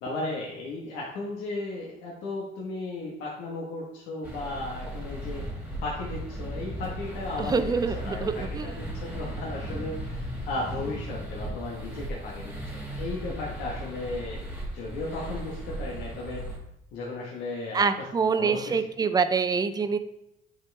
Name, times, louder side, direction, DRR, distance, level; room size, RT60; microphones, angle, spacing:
voice 1, 0.0-5.4 5.8-10.2 10.5-12.5 13.0-14.4 14.7-16.4 16.9-18.1 18.4-19.1, left 2 dB, 90° left, -3 dB, 1.4 m, -35 dB
sound 1, 4.2-16.6, right 1 dB, 5° right, 2.1 m, -36 dB
voice 2, 7.4-8.7 17.7-20.0, right 5 dB, 25° right, 10 dB, 0.5 m, -26 dB
8.9 x 4.5 x 3.4 m, 0.84 s
cardioid pair, 110°, 17 cm